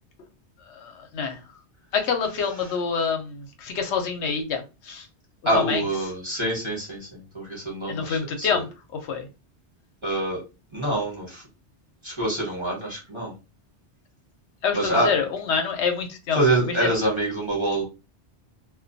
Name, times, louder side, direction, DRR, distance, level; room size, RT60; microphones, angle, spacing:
voice 1, 0.7-1.4 1.9-5.0 5.5-5.8 7.9-8.7 9.1-9.3 14.6-16.4 16.7-16.9, left 6 dB, 80° left, 5 dB, 0.9 m, -26 dB
voice 2, 5.4-8.6 10.0-10.4 10.7-11.4 12.0-13.4 14.7-15.1 16.3-17.8, right 1 dB, 25° right, -3 dB, 1.0 m, -26 dB
2.2 x 2.2 x 2.6 m, 0.28 s
omnidirectional pair, 1.2 m